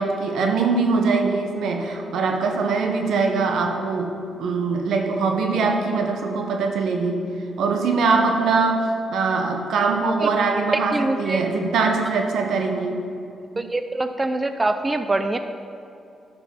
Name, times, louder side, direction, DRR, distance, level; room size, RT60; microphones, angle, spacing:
voice 1, 0.0-4.1 4.4-7.2 7.6-13.0 13.5-13.7, right 4 dB, 80° right, 3 dB, 1.2 m, -22 dB
voice 2, 10.9-11.4 13.6-15.4, right 2 dB, 20° right, 8 dB, 0.4 m, -24 dB
11.5 x 5.4 x 5.6 m, 2.7 s
cardioid pair, 105°, 0 cm